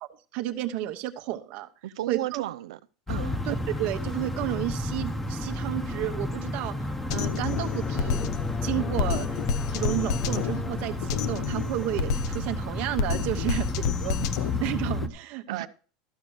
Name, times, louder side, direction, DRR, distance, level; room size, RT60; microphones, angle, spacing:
voice 1, 0.0-1.7 2.1-2.4 3.5-6.7 7.1-8.3 8.6-9.3 9.7-15.7, right 14 dB, 60° right, 1.1 m, -32 dB
voice 2, 1.8-2.8 3.1-3.4 15.5-15.7, right 14 dB, 90° right, 0.6 m, -33 dB
sound 1, 3.1-15.1, left 2 dB, 10° left, 1.1 m, -32 dB
Drum kit, 7.1-15.1, left 6 dB, 80° left, 0.7 m, -31 dB
sound 2, 7.4-11.5, left 7 dB, 30° left, 0.8 m, -34 dB
13.5 x 5.3 x 6.3 m
supercardioid pair, 125°, 3 cm